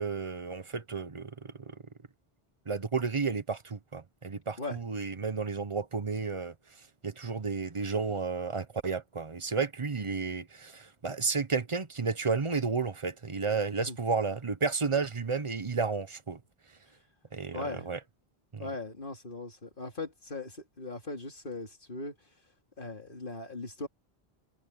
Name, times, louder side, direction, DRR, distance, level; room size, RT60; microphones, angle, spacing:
voice 1, 0.0-1.7 2.7-6.5 7.0-16.4 17.3-18.0 18.5-18.7, right 4 dB, 30° right, 0.9 m, -32 dB
voice 2, 17.5-17.9 18.6-22.2 22.8-23.9, left 2 dB, 55° left, 3.0 m, -39 dB
omnidirectional pair, 1.1 m